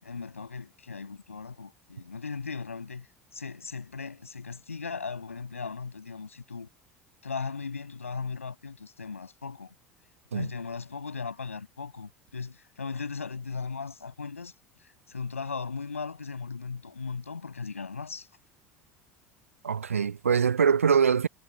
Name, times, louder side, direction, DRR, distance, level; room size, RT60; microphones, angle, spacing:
voice 1, 0.0-3.1 3.3-6.7 7.2-9.7 10.3-14.5 15.1-18.3, left 5 dB, 80° left, 6.2 m, -37 dB
voice 2, 19.6-21.3, right 6 dB, 80° right, 0.6 m, -23 dB
figure-of-eight pair, 70°, 7 cm